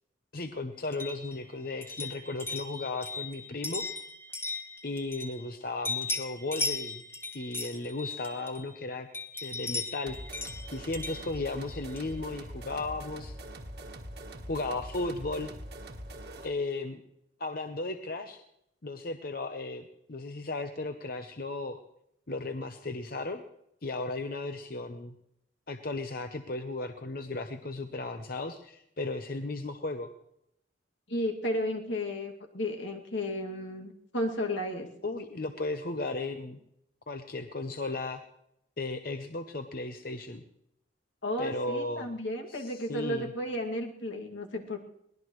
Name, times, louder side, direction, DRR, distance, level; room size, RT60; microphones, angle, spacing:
voice 1, 0.3-3.9 4.8-7.0 7.3-9.1 9.4-10.4 10.7-13.4 14.5-15.5 16.4-17.0 17.4-18.4 18.8-21.8 22.3-23.4 23.8-25.1 25.7-30.1 35.0-36.6 37.1-38.2 38.8-40.4 41.4-42.1 42.5-43.3, left 2 dB, 50° left, 7 dB, 0.8 m, -35 dB
sound 1, 0.9-5.6 5.8-8.8 9.1-12.2, left 3 dB, 10° left, 1.1 m, -37 dB
sound 2, 10.1-16.6, right 1 dB, 55° right, 1.4 m, -43 dB
voice 2, 31.1-34.9 41.2-44.8, left 1 dB, 80° left, 2 dB, 2.3 m, -33 dB
22.5 x 18.5 x 3.2 m, 0.78 s
head